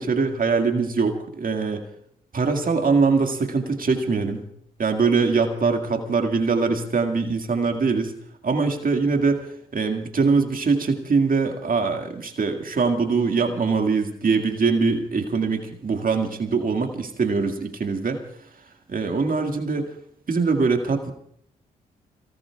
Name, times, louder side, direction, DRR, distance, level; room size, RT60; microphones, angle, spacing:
voice 1, 0.0-1.8 2.3-4.4 4.8-8.1 8.4-18.2 18.9-19.9 20.3-21.1, right 4 dB, 45° right, 5 dB, 2.0 m, -22 dB
28.0 x 18.5 x 2.4 m, 0.65 s
hypercardioid pair, 45°, 20 cm